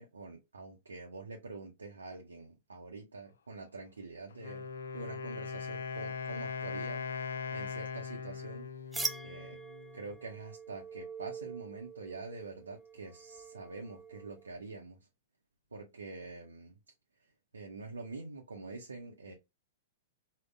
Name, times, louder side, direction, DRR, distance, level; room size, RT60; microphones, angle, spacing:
voice 1, 0.0-4.7 4.9-7.0 7.5-8.7 9.2-9.6 9.9-15.1 15.7-16.8 17.2-19.3, right 3 dB, 85° right, 0.5 m, -46 dB
Wind instrument woodwind instrument, 4.3-10.1, left 5 dB, 75° left, 0.3 m, -40 dB
sound 1, 8.9-14.5, right 3 dB, 5° right, 0.3 m, -43 dB
3.6 x 2.1 x 2.3 m
hypercardioid pair, 110°, 0 cm